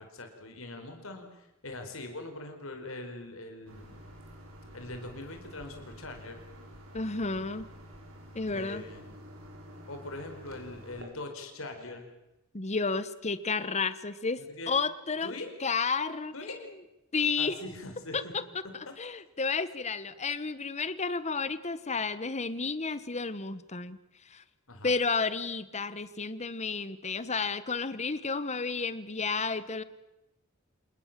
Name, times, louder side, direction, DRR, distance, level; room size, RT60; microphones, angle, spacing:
voice 1, 0.0-4.1 4.7-6.4 8.5-9.2 9.9-12.1 14.4-14.7 15.2-15.5 16.3-16.6 17.4-18.3 24.7-24.9, left 2 dB, 70° left, 5 dB, 4.8 m, -42 dB
sound 1, 3.7-11.0, equal, 85° right, 6.1 m, -49 dB
voice 2, 6.9-7.7 8.3-8.8 12.5-14.4 14.7-15.3 15.6-16.5 17.1-17.5 18.1-18.4 18.7-24.0 24.3-24.4 24.8-29.8, left 4 dB, 35° left, 14 dB, 1.2 m, -31 dB
27.5 x 20.0 x 7.5 m, 0.95 s
head